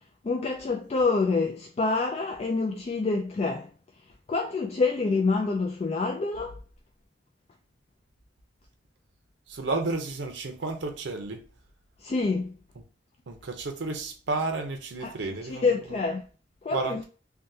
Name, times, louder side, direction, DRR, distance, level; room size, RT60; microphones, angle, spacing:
voice 1, 0.2-3.7 4.3-6.6 12.0-12.5 15.0-16.2 16.6-17.0, left 3 dB, 35° left, 0.3 m, -27 dB
voice 2, 9.5-11.4 13.3-16.0 16.7-17.0, right 3 dB, 85° right, 0.6 m, -32 dB
3.4 x 2.2 x 2.6 m
head